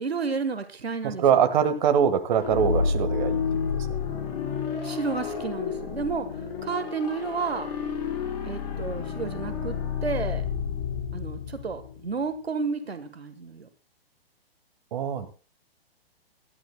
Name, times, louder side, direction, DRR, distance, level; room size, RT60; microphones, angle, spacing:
voice 1, 0.0-1.5 4.8-6.3 6.6-7.7 8.4-9.8 10.0-10.4 11.1-13.7, right 4 dB, 85° right, 10 dB, 1.3 m, -31 dB
voice 2, 1.2-3.4 3.7-3.9 14.9-15.3, right 8 dB, 50° right, 9 dB, 1.5 m, -23 dB
sound 1, 2.4-12.1, left 6 dB, 45° left, 3.8 m, -30 dB
22.0 x 12.5 x 2.2 m, 0.35 s
figure-of-eight pair, 125°, 31 cm